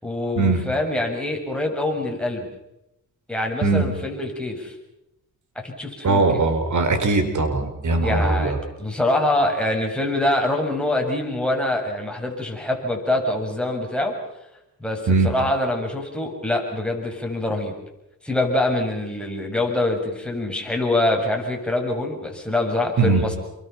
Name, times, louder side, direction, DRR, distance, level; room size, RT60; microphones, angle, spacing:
voice 1, 0.0-2.4 3.3-4.7 5.6-6.4 8.0-14.2 14.8-17.7 18.2-23.4, left 1 dB, 5° left, 0 dB, 7.3 m, -24 dB
voice 2, 6.0-8.6 15.1-15.3 23.0-23.2, right 3 dB, 60° right, 8 dB, 4.7 m, -20 dB
28.5 x 23.5 x 5.9 m, 0.87 s
cardioid pair, 80°, 34 cm